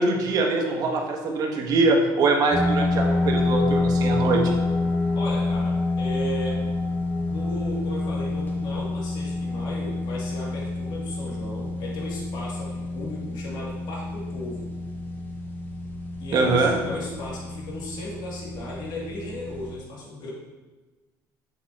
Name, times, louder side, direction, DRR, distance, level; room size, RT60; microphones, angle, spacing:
voice 1, 0.0-4.4 16.3-16.8, right 3 dB, 50° right, 2 dB, 1.3 m, -23 dB
sound 1, 2.5-19.7, left 2 dB, 25° left, 1.2 m, -28 dB
voice 2, 5.1-6.6 7.1-14.7 16.2-20.3, left 1 dB, 65° left, -4 dB, 2.4 m, -36 dB
7.5 x 7.4 x 2.9 m, 1.2 s
cardioid pair, 135°, 8 cm